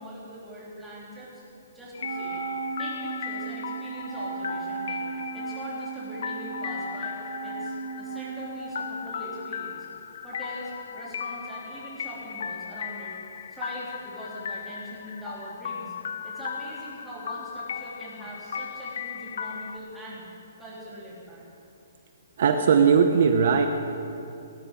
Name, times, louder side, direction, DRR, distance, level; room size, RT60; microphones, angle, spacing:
voice 1, 0.0-1.4 1.7-2.4 2.8-9.9 10.2-13.1 13.5-15.9 16.2-20.2 20.6-21.4, right 1 dB, 5° right, -9 dB, 3.4 m, -42 dB
sound 1, 1.9-19.8, left 7 dB, 60° left, 0.5 m, -37 dB
Wind instrument woodwind instrument, 2.0-9.6, right 4 dB, 90° right, 3.3 m, -35 dB
voice 2, 22.4-23.7, right 6 dB, 55° right, 6 dB, 0.9 m, -19 dB
18.0 x 9.9 x 5.2 m, 2.6 s
hypercardioid pair, 165°, 0 cm